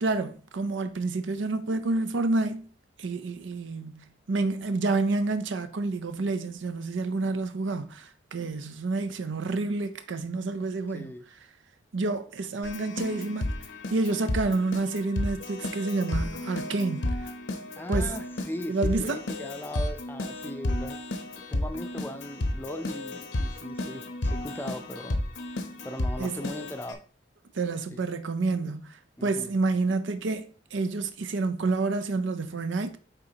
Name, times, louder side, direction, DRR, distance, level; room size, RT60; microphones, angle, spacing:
voice 1, 0.0-2.6 3.0-11.1 11.9-13.5 13.9-17.3 17.9-18.1 18.7-19.2 26.2-26.4 27.5-33.0, right 3 dB, 80° right, 0.5 m, -29 dB
voice 2, 10.9-11.2 17.8-21.0 21.5-25.2 25.8-27.0 27.9-28.1 29.2-29.6, left 1 dB, 10° left, 0.5 m, -39 dB
Keyboard (musical), 12.6-26.9, left 1 dB, 80° left, 0.9 m, -32 dB
9.0 x 3.7 x 2.9 m
head